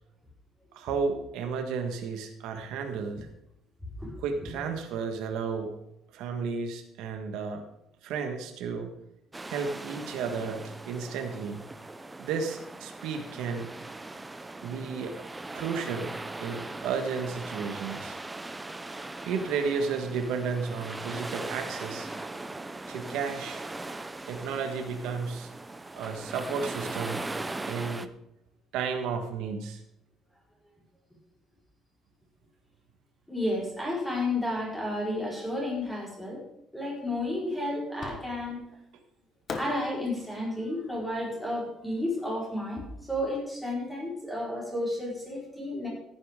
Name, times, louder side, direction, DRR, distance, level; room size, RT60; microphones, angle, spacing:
voice 1, 0.7-3.3 4.2-5.7 6.1-7.6 8.0-8.9 9.5-11.6 12.2-13.7 14.6-15.2 15.5-16.1 16.4-18.2 19.2-22.1 22.9-23.6 24.3-25.5 25.9-27.2 27.7-28.1 28.7-29.8, right 5 dB, 80° right, 5 dB, 1.5 m, -33 dB
sound 1, 9.3-28.1, right 2 dB, 10° right, 0.5 m, -40 dB
voice 2, 33.3-36.4 36.7-38.6 39.5-42.8 43.1-45.9, left 1 dB, 5° left, -4 dB, 4.6 m, -32 dB
Fireworks, 38.0-38.7 39.5-42.6, left 4 dB, 35° left, 1.3 m, -43 dB
15.0 x 9.8 x 3.7 m, 0.82 s
cardioid pair, 150°, 0 cm